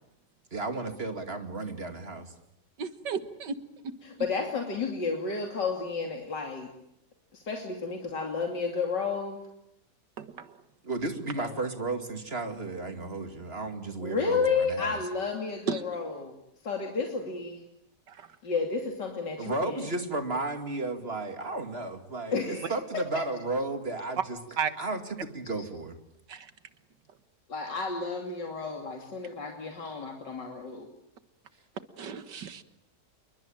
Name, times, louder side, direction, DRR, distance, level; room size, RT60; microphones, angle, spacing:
voice 1, 0.5-2.3 10.8-15.0 19.4-24.4 24.8-26.0, right 2 dB, 35° right, 7 dB, 2.6 m, -33 dB
voice 2, 2.8-4.0 10.2-10.6 15.7-15.8 18.1-18.3 24.6-24.7 26.3-26.5 32.0-32.6, right 6 dB, 85° right, 11 dB, 2.2 m, -34 dB
voice 3, 4.0-6.7 7.3-9.4 11.4-11.6 14.0-16.4 16.6-17.6 18.4-19.9 22.3-22.7 27.5-30.9, left 4 dB, 85° left, 2 dB, 3.5 m, -31 dB
28.5 x 22.5 x 8.9 m, 0.78 s
omnidirectional pair, 1.8 m